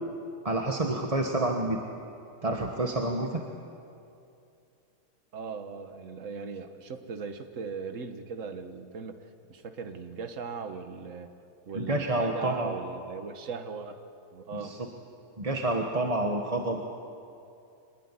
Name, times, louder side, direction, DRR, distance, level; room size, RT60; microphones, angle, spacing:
voice 1, 0.4-1.8 2.4-3.4 11.7-12.8 14.5-14.8 15.4-16.9, right 2 dB, 25° right, 2 dB, 1.2 m, -28 dB
voice 2, 5.3-9.2 9.5-11.3 11.7-14.0 14.3-14.8, right 5 dB, 50° right, 8 dB, 1.7 m, -38 dB
24.5 x 20.0 x 9.9 m, 2.6 s
omnidirectional pair, 1.8 m